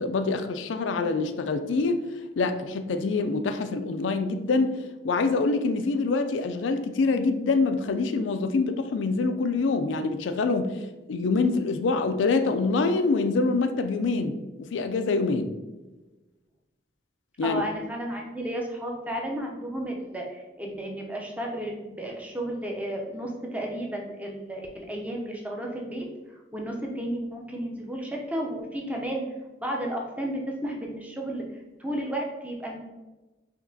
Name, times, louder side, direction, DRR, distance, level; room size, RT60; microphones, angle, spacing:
voice 1, 0.0-2.0 2.4-4.7 5.0-10.8 11.1-15.5 17.4-17.6, left 3 dB, 90° left, 8 dB, 0.4 m, -25 dB
voice 2, 17.4-26.1 26.5-29.2 29.6-31.4 31.8-32.8, right 1 dB, 10° right, 0 dB, 0.6 m, -33 dB
5.1 x 2.9 x 2.7 m, 1.1 s
head